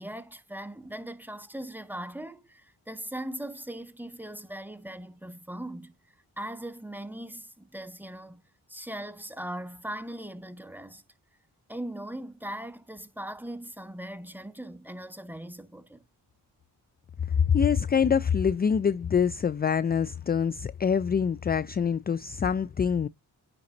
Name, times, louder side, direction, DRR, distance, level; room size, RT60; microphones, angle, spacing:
voice 1, 0.0-5.9 6.4-11.0 11.7-16.0, right 1 dB, 5° right, 1.3 m, -39 dB
voice 2, 17.4-23.1, left 7 dB, 25° left, 0.3 m, -25 dB
9.6 x 4.1 x 2.8 m
cardioid pair, 45°, 43 cm